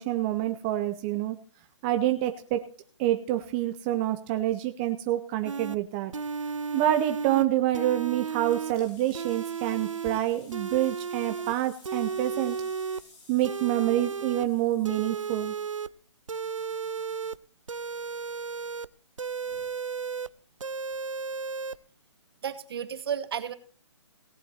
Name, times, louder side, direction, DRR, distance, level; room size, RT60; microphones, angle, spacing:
voice 1, 0.0-1.4 1.8-2.6 3.0-6.1 6.7-12.6 13.3-15.5, right 13 dB, 20° right, 8 dB, 0.5 m, -27 dB
sound 1, 5.4-5.8 6.1-7.4 7.7-8.7 9.1-10.2 10.5-11.5 11.8-13.0 13.4-14.5 14.8-15.9 16.3-17.4 17.7-18.9 19.2-20.3 20.6-21.8, right 5 dB, 85° right, 0.6 m, -34 dB
sound 2, 8.1-15.5, left 3 dB, 60° left, 7.0 m, -56 dB
voice 2, 22.4-23.5, right 8 dB, 50° right, 12 dB, 1.3 m, -33 dB
17.5 x 7.9 x 4.3 m, 0.44 s
figure-of-eight pair, 145°, 16 cm